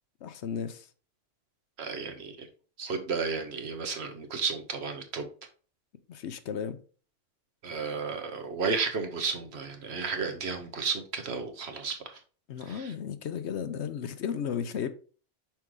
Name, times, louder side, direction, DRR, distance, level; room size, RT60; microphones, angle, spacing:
voice 1, 0.2-0.9 6.1-6.8 12.5-14.9, left 7 dB, 70° left, 0.9 m, -34 dB
voice 2, 1.8-2.5 2.8-5.3 7.6-12.2 12.7-12.9, right 5 dB, 60° right, 1.2 m, -33 dB
5.9 x 4.7 x 3.7 m
omnidirectional pair, 1.3 m